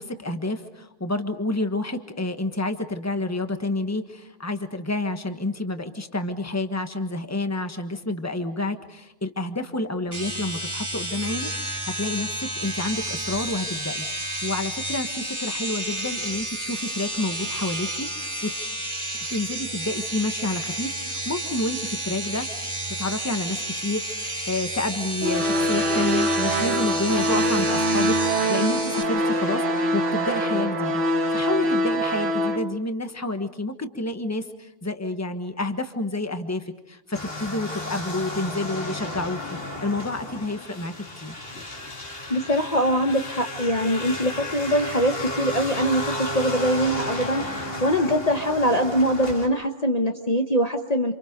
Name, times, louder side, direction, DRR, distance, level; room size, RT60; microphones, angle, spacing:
voice 1, 0.0-18.5 19.3-22.5 23.0-41.3, left 2 dB, 15° left, 7 dB, 1.4 m, -29 dB
sound 1, 10.1-29.0, right 1 dB, 25° right, 3.0 m, -31 dB
sound 2, 25.2-32.6, equal, 75° right, 2.2 m, -23 dB
sound 3, 37.1-49.5, left 1 dB, 55° left, 3.1 m, -33 dB
voice 2, 42.3-51.1, equal, 35° left, 3 dB, 1.2 m, -23 dB
28.5 x 28.0 x 5.3 m, 0.90 s
omnidirectional pair, 1.2 m